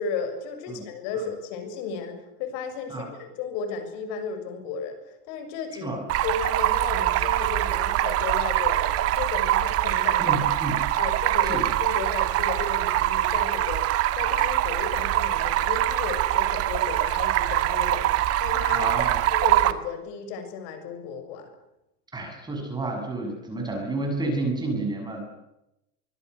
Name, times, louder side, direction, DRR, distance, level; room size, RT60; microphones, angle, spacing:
voice 1, 0.0-5.0 5.2-6.0 6.2-10.6 10.9-13.9 14.1-18.9 19.3-21.5, left 5 dB, 50° left, 7 dB, 7.2 m, -34 dB
voice 2, 5.7-6.0 10.2-10.8 11.4-11.7 18.7-19.2 22.1-25.3, right 2 dB, 10° right, 2 dB, 7.9 m, -30 dB
Stream, 6.1-19.7, right 14 dB, 30° right, 1.6 m, -24 dB
25.0 x 21.5 x 8.4 m, 0.88 s
supercardioid pair, 150°, 45 cm